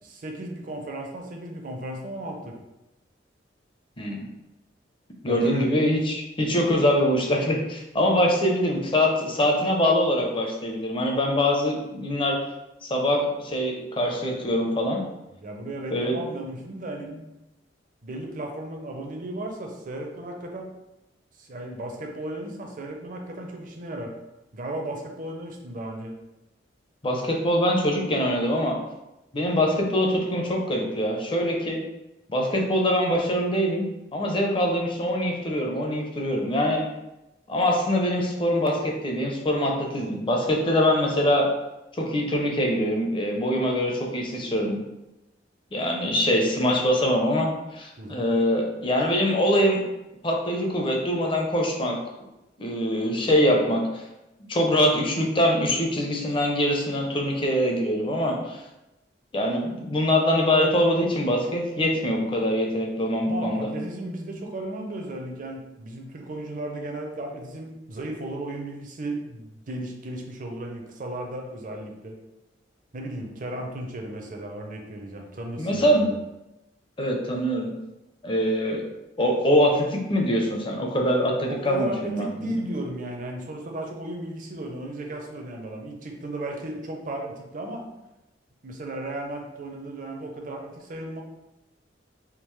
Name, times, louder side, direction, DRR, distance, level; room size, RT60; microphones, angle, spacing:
voice 1, 0.0-2.6 5.3-5.6 15.4-17.2 18.0-20.7 21.4-24.1 24.5-26.1 48.0-48.2 63.2-72.2 72.9-76.1 81.5-87.8 88.6-91.2, right 1 dB, 45° right, 2 dB, 0.6 m, -35 dB
voice 2, 4.0-4.3 5.2-12.4 12.8-15.0 15.9-16.2 27.0-28.8 29.3-31.8 32.3-33.8 34.1-36.8 37.5-41.5 42.0-44.8 45.7-49.8 50.2-52.0 52.6-54.0 54.5-58.6 59.3-63.7 75.6-76.1 77.0-77.7 78.2-78.8 79.2-82.6, equal, 25° left, 1 dB, 0.6 m, -23 dB
3.6 x 2.8 x 3.2 m, 0.96 s
head